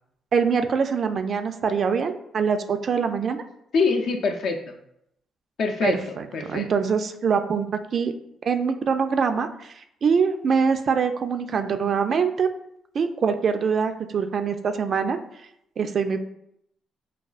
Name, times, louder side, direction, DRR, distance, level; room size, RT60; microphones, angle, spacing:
voice 1, 0.3-3.4 5.8-8.1 8.4-12.5 12.9-15.2 15.8-16.2, right 6 dB, 50° right, 8 dB, 0.3 m, -24 dB
voice 2, 3.7-4.8 5.6-6.7, left 4 dB, 70° left, 4 dB, 0.5 m, -25 dB
4.6 x 2.3 x 2.4 m, 0.77 s
cardioid pair, 90°, 0 cm